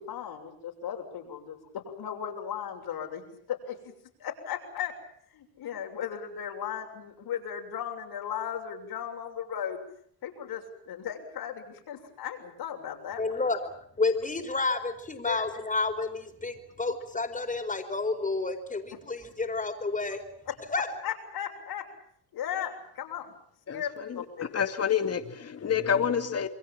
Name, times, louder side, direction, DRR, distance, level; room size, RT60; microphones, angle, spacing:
voice 1, 0.0-3.2 3.5-3.9 4.2-4.9 5.3-9.8 10.2-13.2 15.2-15.5 20.5-20.6 21.0-21.8 22.3-23.3 23.7-24.5, left 9 dB, 70° left, 3 dB, 6.9 m, -36 dB
voice 2, 13.2-13.6 14.0-20.2 20.7-20.9, left 3 dB, 20° left, 6 dB, 4.5 m, -30 dB
voice 3, 23.7-26.5, left 8 dB, 40° left, 8 dB, 2.4 m, -28 dB
28.5 x 23.0 x 7.4 m, 0.66 s
cardioid pair, 110°, 39 cm